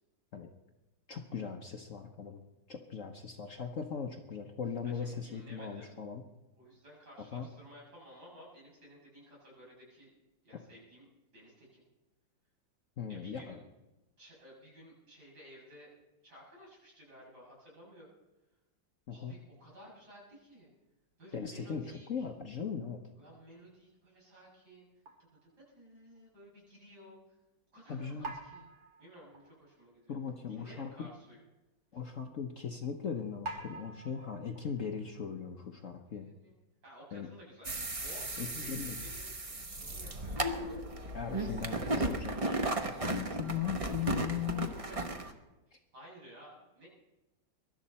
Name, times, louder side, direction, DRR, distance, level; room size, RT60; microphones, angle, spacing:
voice 1, 1.1-2.4 2.7-6.2 7.3-7.5 10.5-10.6 13.0-13.6 19.1-19.4 21.3-23.0 27.9-28.3 30.1-30.9 31.9-36.3 37.1-37.3 38.4-39.1 41.1-42.6 43.0-44.7, left 7 dB, 50° left, 4 dB, 1.1 m, -39 dB
voice 2, 4.8-5.9 6.6-10.1 10.4-11.1 11.3-11.8 13.1-13.6 14.2-15.9 16.2-18.1 19.1-20.7 21.2-22.3 23.2-24.9 25.7-27.2 27.7-28.6 29.0-30.2 30.5-31.4 35.3-36.5 36.8-39.3 39.7-40.5 44.9-45.0 45.9-46.9, equal, 60° right, -4 dB, 7.5 m, -55 dB
sound 1, 25.1-25.6 26.2-26.3 28.2-29.9 30.4-30.5 30.7-30.9 31.6-31.7 33.4-35.1, right 2 dB, 85° right, 2.9 m, -46 dB
sound 2, 37.6-45.3, right 1 dB, 25° right, 0.8 m, -35 dB
23.0 x 12.0 x 4.2 m, 1.0 s
omnidirectional pair, 2.0 m